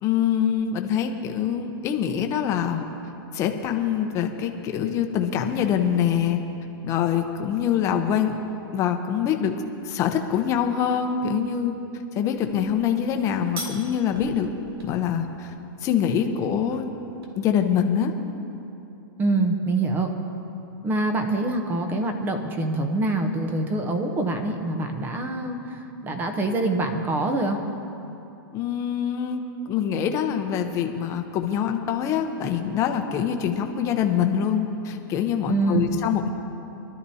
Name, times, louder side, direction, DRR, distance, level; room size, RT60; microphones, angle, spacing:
voice 1, 0.0-2.8 3.3-6.4 6.8-8.4 8.7-11.7 12.1-14.5 14.8-15.5 15.8-16.9 17.3-18.1 28.5-36.3, left 8 dB, 25° left, 5 dB, 0.8 m, -24 dB
sound 1, 12.2-17.3, right 1 dB, 90° right, 2.4 m, -43 dB
voice 2, 19.2-20.1 20.8-27.6 35.5-36.0, right 2 dB, 15° right, 5 dB, 0.8 m, -25 dB
23.5 x 12.5 x 2.8 m, 2.9 s
hypercardioid pair, 155°, 12 cm